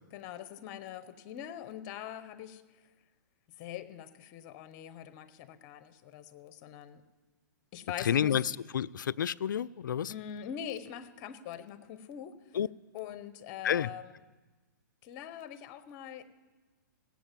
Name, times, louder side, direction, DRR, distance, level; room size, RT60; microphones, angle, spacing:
voice 1, 0.1-2.6 3.6-7.0 7.7-8.4 10.1-12.4 12.9-14.1 15.0-16.2, left 9 dB, 35° left, 13 dB, 0.9 m, -43 dB
voice 2, 8.0-8.4 8.7-10.1 12.5-12.7 13.6-13.9, left 9 dB, 75° left, 17 dB, 0.4 m, -29 dB
17.0 x 7.4 x 7.5 m, 1.3 s
hypercardioid pair, 130°, 10 cm